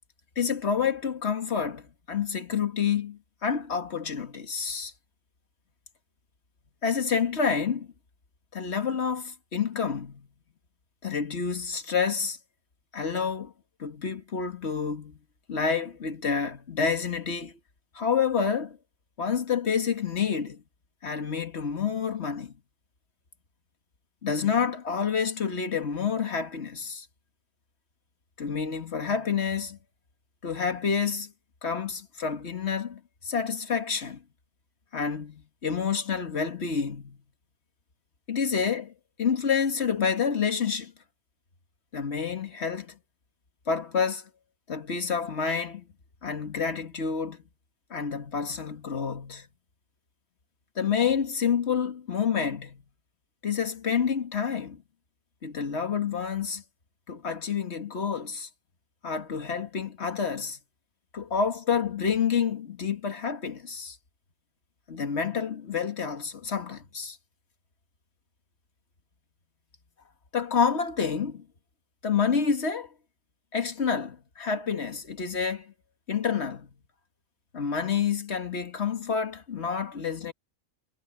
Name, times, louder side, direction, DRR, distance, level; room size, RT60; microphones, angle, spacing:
voice 1, 0.4-4.9 6.8-7.9 8.5-10.3 11.0-12.4 12.9-13.5 13.8-15.2 15.5-17.5 18.0-18.8 19.2-20.6 21.0-22.6 24.2-27.1 28.4-29.8 30.4-31.3 31.6-34.2 34.9-37.2 38.3-38.9 39.2-40.9 41.9-42.9 43.7-44.2 44.7-45.8 46.2-47.4 47.9-49.5 50.8-52.8 53.4-54.8 55.4-56.6 57.1-58.5 59.0-60.6 61.1-64.0 64.9-67.2 70.3-71.4 72.0-72.9 73.5-75.7 76.1-76.7 77.5-80.3, left 6 dB, 65° left, 1.9 m, -28 dB
omnidirectional pair, 1.3 m